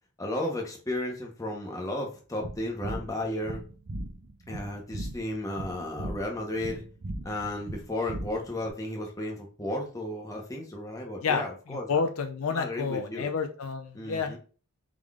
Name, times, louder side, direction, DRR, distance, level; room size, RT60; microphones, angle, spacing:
voice 1, 0.2-3.6 4.5-6.9 7.2-12.0 12.5-13.3 13.9-14.4, left 1 dB, 15° left, 0 dB, 0.8 m, -34 dB
sound 1, 2.4-8.7, right 1 dB, 50° right, 0.7 m, -38 dB
voice 2, 11.7-14.4, left 5 dB, 65° left, 7 dB, 0.5 m, -29 dB
4.8 x 3.8 x 2.4 m, 0.37 s
head